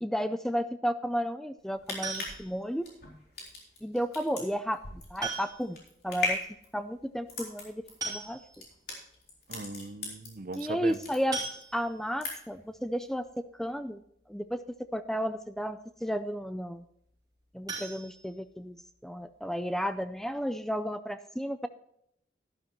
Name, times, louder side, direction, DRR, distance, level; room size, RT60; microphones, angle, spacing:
voice 1, 0.0-2.9 3.8-5.8 6.0-6.4 6.7-8.6 10.5-11.4 11.7-13.3 13.6-14.0 14.3-16.8 17.5-21.7, equal, ahead, 11 dB, 0.4 m, -33 dB
sound 1, 1.6-10.6 10.9-11.7 12.0-12.6 13.0-13.1, left 3 dB, 60° left, 3.9 m, -38 dB
sound 2, 2.0-2.6 4.1-4.2 5.2-5.8 6.1-6.2 6.5-6.6 7.6-7.7 8.0-8.7 9.3-9.4 9.7-9.9 11.3-12.1 17.6-18.8 19.2-19.3 19.7-19.8 20.2-20.3, right 3 dB, 20° right, 4.7 m, -38 dB
voice 2, 9.5-11.0, right 2 dB, 50° right, 12 dB, 0.7 m, -39 dB
12.0 x 12.0 x 3.0 m, 0.72 s
head